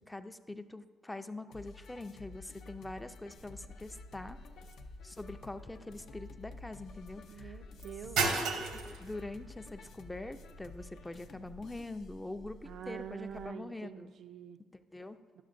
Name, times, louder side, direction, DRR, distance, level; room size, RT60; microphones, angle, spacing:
voice 1, 0.1-4.4 5.0-7.6 8.2-8.4 8.7-14.1 14.7-15.2, left 2 dB, 10° left, 9 dB, 0.4 m, -44 dB
sound 1, 1.5-12.1, left 3 dB, 70° left, 0.5 m, -52 dB
sound 2, 3.4-13.5, right 4 dB, 85° right, 0.8 m, -40 dB
voice 2, 7.3-8.3 12.6-14.6 15.4-15.5, right 8 dB, 65° right, 9 dB, 0.3 m, -45 dB
11.0 x 6.3 x 2.5 m, 1.5 s
cardioid pair, 80°, 0 cm